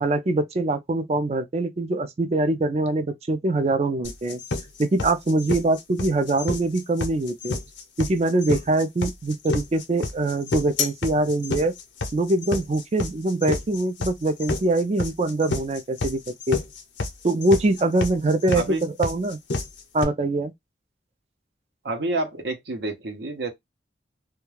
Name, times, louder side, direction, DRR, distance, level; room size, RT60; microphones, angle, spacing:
voice 1, 0.0-4.4 4.8-7.6 8.0-11.7 12.1-16.6 17.2-19.4 19.9-20.5, right 2 dB, 35° right, 0.4 m, -23 dB
sound 1, 4.0-20.0, left 3 dB, 85° left, 0.6 m, -29 dB
voice 2, 21.8-23.5, right 2 dB, 70° right, 0.7 m, -28 dB
2.3 x 2.2 x 3.1 m
head